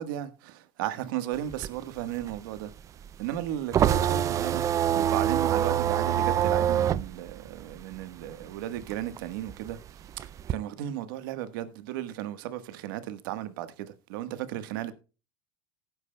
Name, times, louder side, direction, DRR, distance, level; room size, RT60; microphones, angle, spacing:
voice 1, 0.0-2.7 3.2-4.6 4.9-9.8 10.5-14.9, right 12 dB, 85° right, 1.4 m, -34 dB
sound 1, 1.3-8.4 8.8-10.5, right 10 dB, 30° right, 0.4 m, -26 dB
17.0 x 9.6 x 2.3 m
supercardioid pair, 140°, 11 cm